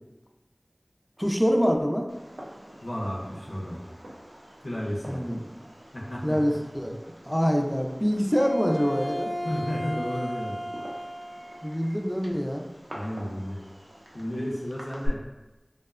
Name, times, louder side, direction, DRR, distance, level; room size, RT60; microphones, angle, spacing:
voice 1, 1.2-2.1 5.1-5.4 6.2-6.9 7.3-9.3 11.6-12.7, equal, 5° left, 1 dB, 0.3 m, -25 dB
Fireworks, 2.1-15.1, equal, 85° right, 0.4 m, -45 dB
voice 2, 2.8-3.8 4.6-5.2 5.9-6.5 9.4-10.6 12.9-13.6 14.1-15.2, equal, 75° left, -4 dB, 0.5 m, -32 dB
Bowed string instrument, 8.3-11.7, equal, 40° right, 0.6 m, -34 dB
2.7 x 2.1 x 2.3 m, 1.1 s
wide cardioid pair, 40°, 0 cm